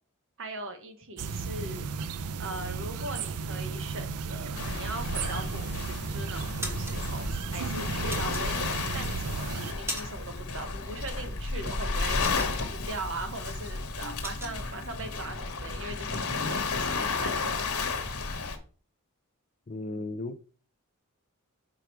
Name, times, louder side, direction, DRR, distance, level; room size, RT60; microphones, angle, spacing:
voice 1, 0.4-1.8 2.4-18.0, right 2 dB, 60° right, 6 dB, 1.3 m, -40 dB
sound 1, 1.2-9.7, right 5 dB, 85° right, 0.5 m, -34 dB
Waves surf, 4.5-18.6, left 4 dB, 75° left, 1.2 m, -33 dB
sound 2, 6.6-7.0 8.1-8.9 9.4-10.4 10.6-10.9 11.3-13.0 13.3-13.5 13.8-14.6, equal, 10° right, 1.5 m, -38 dB
voice 2, 19.7-20.4, left 2 dB, 35° left, 13 dB, 0.4 m, -35 dB
5.9 x 5.1 x 4.6 m, 0.40 s
head